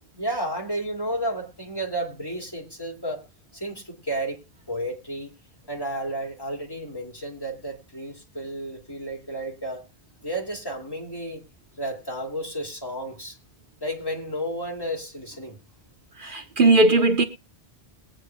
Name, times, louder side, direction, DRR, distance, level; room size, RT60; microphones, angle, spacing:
voice 1, 0.1-3.2 3.5-4.4 4.7-5.3 5.7-9.8 10.2-11.4 11.8-13.4 13.8-15.6, right 1 dB, 20° left, 2.6 m, -32 dB
voice 2, 16.2-17.2, right 2 dB, 55° right, 1.2 m, -18 dB
21.5 x 9.0 x 2.3 m
omnidirectional pair, 1.1 m